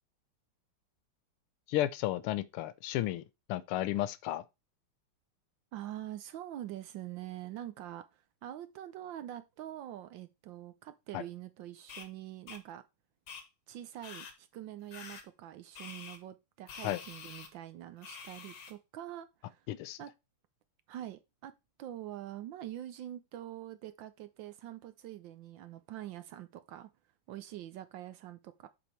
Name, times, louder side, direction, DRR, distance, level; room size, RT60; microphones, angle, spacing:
voice 1, 1.7-3.2 3.5-4.4 11.1-11.2 16.8-17.0 19.7-20.0, left 14 dB, 85° left, 1.5 m, -33 dB
voice 2, 5.7-12.8 13.7-19.7 20.0-20.1 20.9-21.5 21.8-26.9 27.3-28.7, right 12 dB, 75° right, 1.2 m, -45 dB
sound 1, 11.9-12.1 12.5-12.6 13.3-13.4 14.0-14.3 14.9-15.2 15.7-16.2 16.7-17.5 18.0-18.7, left 6 dB, 65° left, 2.0 m, -47 dB
7.0 x 4.9 x 4.3 m
omnidirectional pair, 2.4 m